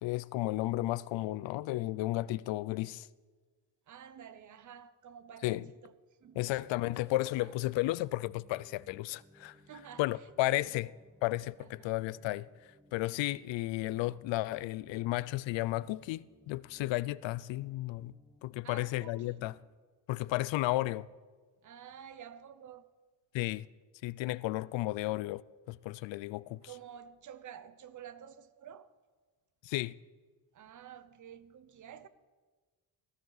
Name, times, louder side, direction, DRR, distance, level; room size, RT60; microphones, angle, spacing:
voice 1, 0.0-3.1 5.4-5.6 6.4-9.6 10.0-10.9 11.2-12.5 12.9-18.1 18.4-19.5 20.1-21.1 23.3-23.7 24.0-25.4 25.7-26.6 29.6-29.9, left 17 dB, 85° left, 0.6 m, -33 dB
voice 2, 3.9-6.4 7.4-7.6 9.6-10.7 11.6-12.0 18.6-19.5 21.6-22.9 26.6-28.9 30.5-32.1, right 9 dB, 45° right, 0.8 m, -51 dB
sound 1, 6.2-19.6, right 1 dB, 15° right, 1.7 m, -64 dB
18.0 x 15.5 x 4.0 m
cardioid pair, 155°, 43 cm